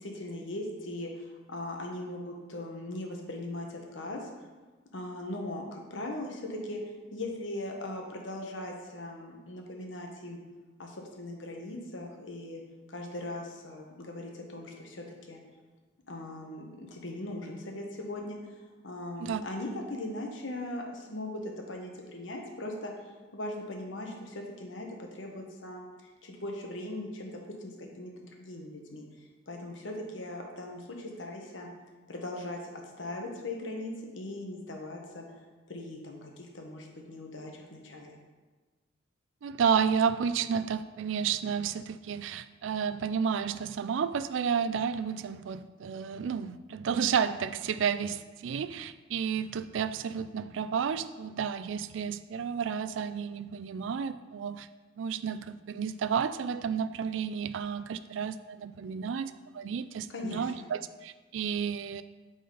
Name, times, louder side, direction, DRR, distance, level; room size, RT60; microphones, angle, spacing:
voice 1, 0.0-4.3 4.9-6.8 7.1-10.4 10.8-12.6 12.9-15.4 16.1-18.4 18.8-22.9 23.3-28.1 28.4-29.1 29.5-31.7 32.1-32.6 33.0-35.2 35.7-38.2 60.1-60.5, left 1 dB, 90° left, 1 dB, 1.2 m, -39 dB
voice 2, 39.4-54.7 55.0-62.0, right 7 dB, 85° right, 13 dB, 0.3 m, -31 dB
8.4 x 4.1 x 3.9 m, 1.3 s
head